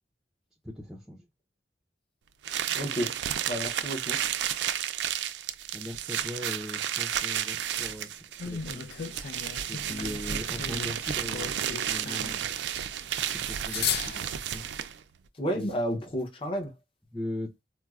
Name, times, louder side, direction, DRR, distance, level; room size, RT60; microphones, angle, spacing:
voice 1, 0.6-1.2 5.7-8.2 8.4-8.8 9.7-12.4 13.1-14.7 15.5-15.7 17.1-17.5, left 1 dB, 5° right, 0.4 m, -39 dB
sound 1, 2.4-15.0, right 10 dB, 75° right, 0.3 m, -32 dB
voice 2, 2.7-3.1 3.5-4.2 15.3-16.7, equal, 30° left, 0.7 m, -31 dB
sound 2, 8.4-14.8, left 7 dB, 60° left, 0.4 m, -37 dB
4.2 x 2.0 x 2.3 m
head